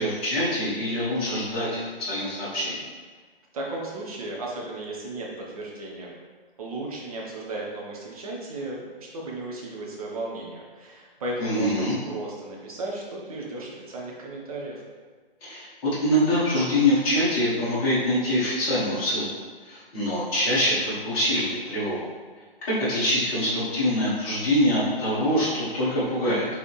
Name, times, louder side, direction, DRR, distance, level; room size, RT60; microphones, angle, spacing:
voice 1, 0.0-2.8 11.4-11.9 15.4-19.3 19.6-22.1 22.7-26.5, left 1 dB, 25° left, -11 dB, 1.4 m, -24 dB
voice 2, 3.5-6.1 6.6-14.8, right 2 dB, 40° right, -3 dB, 1.0 m, -35 dB
4.1 x 3.3 x 3.2 m, 1.5 s
figure-of-eight pair, 135°, 29 cm